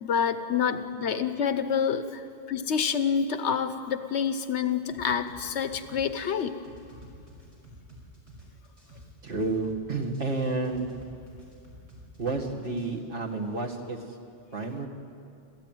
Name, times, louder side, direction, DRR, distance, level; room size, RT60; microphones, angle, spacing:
voice 1, 0.0-2.2 2.5-6.6, left 7 dB, 85° left, 10 dB, 1.3 m, -27 dB
sound 1, 4.9-12.9, equal, 75° right, 5.9 m, -50 dB
voice 2, 9.2-10.9 12.2-14.2 14.5-14.9, right 3 dB, 55° right, 0 dB, 2.1 m, -30 dB
30.0 x 14.0 x 9.2 m, 2.5 s
omnidirectional pair, 1.1 m